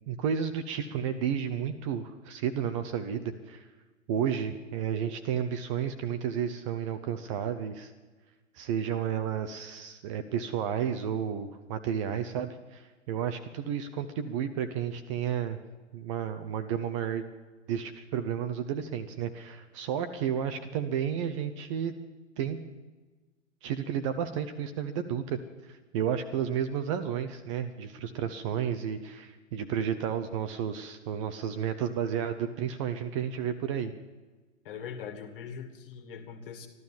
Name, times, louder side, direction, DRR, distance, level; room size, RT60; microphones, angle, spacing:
voice 1, 0.1-3.7 4.1-7.9 8.5-15.6 15.9-17.3 17.7-21.9 22.4-22.6 23.6-33.9, right 8 dB, 25° right, 9 dB, 0.7 m, -32 dB
voice 2, 34.6-36.7, left 7 dB, 45° left, 8 dB, 2.0 m, -41 dB
14.0 x 12.0 x 7.2 m, 1.3 s
figure-of-eight pair, 115°, 38 cm